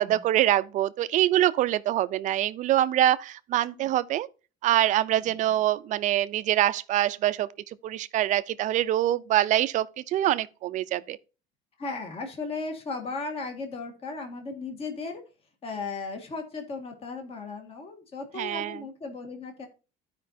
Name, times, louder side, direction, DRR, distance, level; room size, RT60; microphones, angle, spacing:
voice 1, 0.0-4.3 4.6-11.2 18.4-18.8, right 13 dB, 40° right, 0.5 m, -25 dB
voice 2, 11.8-15.2 15.6-19.7, left 3 dB, 30° left, 1.7 m, -36 dB
14.5 x 5.1 x 2.7 m
cardioid pair, 165°, 19 cm